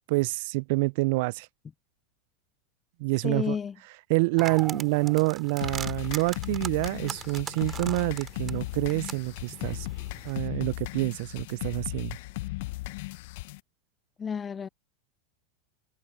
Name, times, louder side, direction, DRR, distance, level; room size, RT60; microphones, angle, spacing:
voice 1, 0.1-1.5 3.0-3.6 4.1-9.9 10.2-12.2, right 26 dB, 60° right, 0.6 m, -27 dB
voice 2, 3.2-3.7 4.7-4.8 14.2-14.7, left 6 dB, 25° left, 0.5 m, -31 dB
sound 1, 4.4-10.4, right 8 dB, 30° right, 4.2 m, -41 dB
sound 2, 5.6-13.6, left 20 dB, 60° left, 1.1 m, -36 dB
hypercardioid pair, 90°, 0 cm